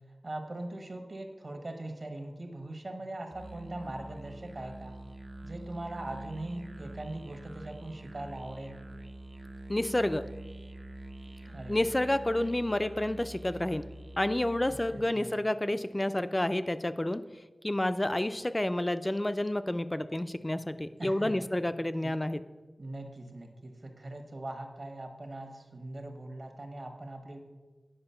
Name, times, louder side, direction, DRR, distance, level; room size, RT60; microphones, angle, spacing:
voice 1, 0.2-5.0 5.4-8.8 11.5-11.8 14.7-15.3 21.0-21.4 22.0-22.2 22.8-27.4, right 1 dB, 60° right, 4 dB, 1.2 m, -41 dB
Musical instrument, 3.3-15.0, right 1 dB, 40° right, 0.4 m, -45 dB
voice 2, 9.7-10.2 11.7-13.8 14.2-17.2 17.6-22.4, left 1 dB, 25° left, 12 dB, 0.4 m, -29 dB
8.8 x 4.9 x 5.6 m, 1.3 s
wide cardioid pair, 60°, 0 cm